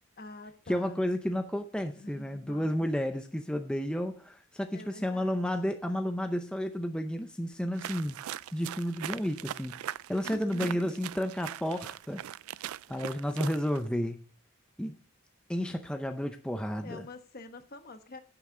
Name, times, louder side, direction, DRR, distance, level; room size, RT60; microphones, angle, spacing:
voice 1, 0.2-1.0 2.0-2.9 4.7-5.4 10.2-10.9 16.8-18.2, left 2 dB, 45° left, 8 dB, 1.1 m, -47 dB
voice 2, 0.7-8.2 8.5-12.3 12.9-14.2 14.8-15.0 15.5-17.1, equal, 5° left, 6 dB, 0.5 m, -32 dB
sound 1, 7.7-13.9, right 11 dB, 80° right, 0.3 m, -40 dB
9.6 x 8.8 x 3.8 m, 0.43 s
head